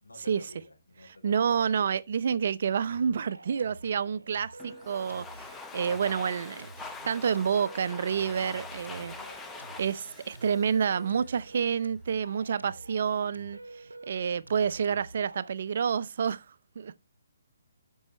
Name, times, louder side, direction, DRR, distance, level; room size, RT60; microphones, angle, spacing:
voice 1, 0.0-1.6 9.0-9.5 10.3-10.5 14.4-14.7, left 2 dB, 85° left, 3.4 m, -52 dB
voice 2, 1.2-9.1 9.8-17.0, right 7 dB, 55° right, 0.6 m, -29 dB
sound 1, 2.9-15.5, right 2 dB, 90° right, 0.8 m, -48 dB
Domestic sounds home sounds, 4.6-11.5, left 4 dB, 10° left, 0.9 m, -45 dB
12.5 x 5.5 x 3.2 m
figure-of-eight pair, 140°, 0 cm